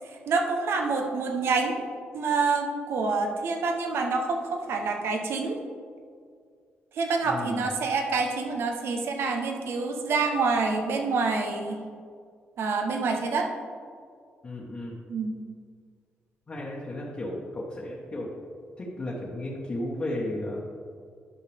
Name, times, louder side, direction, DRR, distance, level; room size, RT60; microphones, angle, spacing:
voice 1, 0.3-1.8 2.1-5.6 6.9-11.8 12.6-13.5 15.1-15.4, right 4 dB, 75° right, 4 dB, 1.0 m, -27 dB
voice 2, 7.2-7.7 14.4-15.0 16.5-18.4 18.8-20.6, left 1 dB, 35° left, -5 dB, 1.4 m, -34 dB
11.5 x 5.7 x 3.5 m, 2.1 s
cardioid pair, 95°, 4 cm